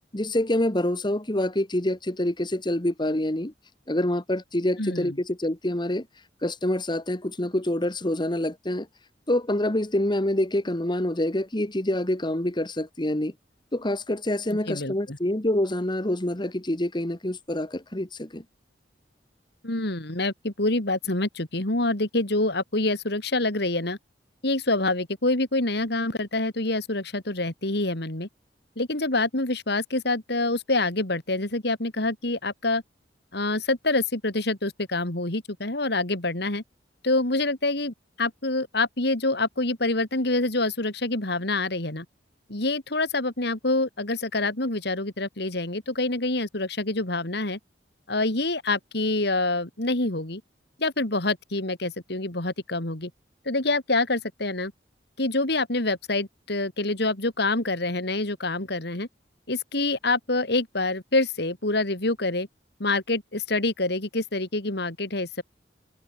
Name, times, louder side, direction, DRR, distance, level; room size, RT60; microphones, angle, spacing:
voice 1, 0.1-3.5 3.9-6.1 6.4-8.9 9.3-13.3 13.7-18.4, left 1 dB, 25° left, 1.8 m, -26 dB
voice 2, 4.8-5.2 14.5-15.2 19.6-24.0 24.4-28.3 28.8-32.8 33.3-36.6 37.0-42.0 42.5-47.6 48.1-50.4 50.8-53.1 53.4-54.7 55.2-59.1 59.5-62.5 62.8-65.4, left 2 dB, 65° left, 3.3 m, -26 dB
head